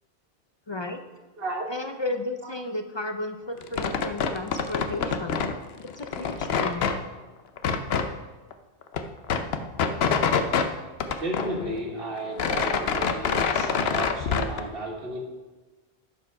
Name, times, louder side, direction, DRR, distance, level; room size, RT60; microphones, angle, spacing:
voice 1, 0.7-1.0 1.7-5.4 5.8-6.9, left 2 dB, 40° left, 6 dB, 0.4 m, -33 dB
voice 2, 1.4-1.7 2.4-2.5 11.2-15.2, right 1 dB, 65° right, 0 dB, 1.8 m, -33 dB
sound 1, 3.6-5.6 5.9-7.0 7.6-8.1 8.5-8.6 8.8-10.7 11.0-11.9 12.2-14.6, left 6 dB, 75° left, 0.9 m, -26 dB
11.5 x 5.0 x 4.7 m, 1.2 s
omnidirectional pair, 1.1 m